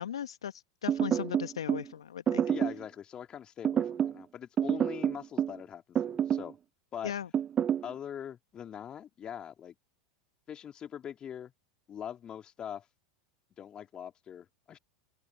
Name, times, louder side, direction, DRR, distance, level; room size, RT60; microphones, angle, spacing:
voice 1, 0.0-2.4 7.0-7.3, left 9 dB, 75° left, 1.3 m, -37 dB
sound 1, 0.9-1.9 2.3-2.8 3.6-4.2 4.6-5.6 5.9-6.5 7.3-7.9, right 9 dB, 30° right, 0.7 m, -28 dB
voice 2, 2.4-6.6 6.9-7.1 7.8-9.7 10.5-11.5 11.9-12.9 13.6-14.8, left 9 dB, 30° left, 3.2 m, -42 dB
open air
figure-of-eight pair, 90°, 3 cm